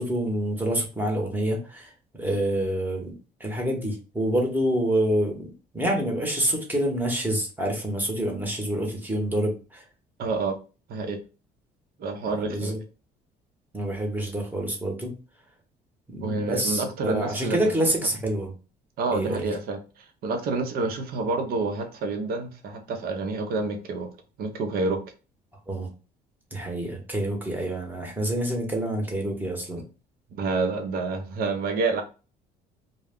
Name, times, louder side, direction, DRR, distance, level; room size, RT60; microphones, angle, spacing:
voice 1, 0.0-3.1 3.4-5.5 5.7-9.8 12.3-12.8 13.7-15.1 16.1-18.5 19.1-19.5 25.7-25.9 26.5-29.8, right 1 dB, 10° right, 1.0 m, -27 dB
voice 2, 10.2-10.6 10.9-11.2 12.0-12.7 16.2-17.7 19.0-24.1 24.4-25.0 30.3-32.0, right 3 dB, 65° right, 0.7 m, -28 dB
2.2 x 2.1 x 3.5 m
cardioid pair, 110°, 17 cm